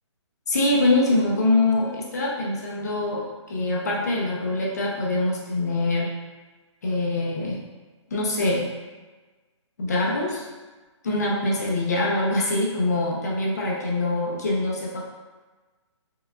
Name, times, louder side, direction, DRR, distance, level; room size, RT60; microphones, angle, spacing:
voice 1, 0.5-6.1 6.8-7.6 8.1-8.7 9.8-10.4 11.0-15.0, left 2 dB, 35° left, -3 dB, 0.5 m, -24 dB
4.6 x 2.4 x 2.2 m, 1.3 s
hypercardioid pair, 175°, 16 cm